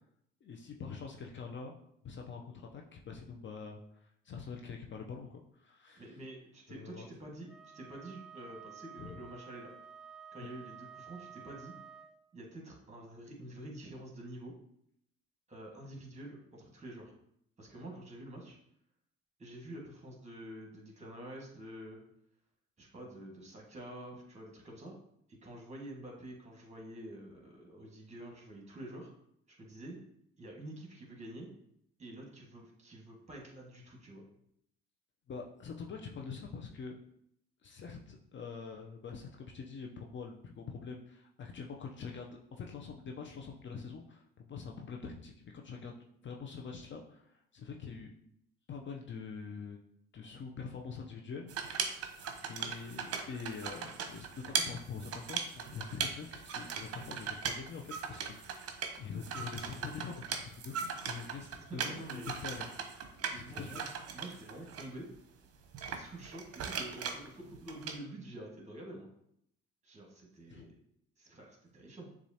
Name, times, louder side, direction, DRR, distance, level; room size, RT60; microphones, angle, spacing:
voice 1, 0.4-1.7 2.0-3.8 4.2-6.1 6.7-7.1 9.0-9.2 35.3-37.0 37.6-45.9 46.2-48.1 48.7-49.8 50.1-51.9 52.4-58.6 59.0-63.8 70.5-70.7, left 5 dB, 40° left, 2 dB, 0.6 m, -45 dB
voice 2, 6.0-7.5 7.7-9.7 10.3-11.8 12.3-14.5 15.5-17.1 17.6-18.6 19.4-22.0 22.8-24.9 25.3-29.1 29.5-30.0 30.4-31.5 32.0-34.2 61.4-62.4 63.1-63.8 64.1-65.1 65.9-69.1 69.8-70.8 71.2-72.1, right 1 dB, 25° right, 0 dB, 1.7 m, -48 dB
Wind instrument woodwind instrument, 7.5-12.2, right 7 dB, ahead, 0.3 m, -52 dB
sound 1, 51.5-64.8 65.7-68.0, right 6 dB, 50° right, 0.7 m, -39 dB
6.7 x 2.5 x 2.8 m, 0.72 s
hypercardioid pair, 65°, 30 cm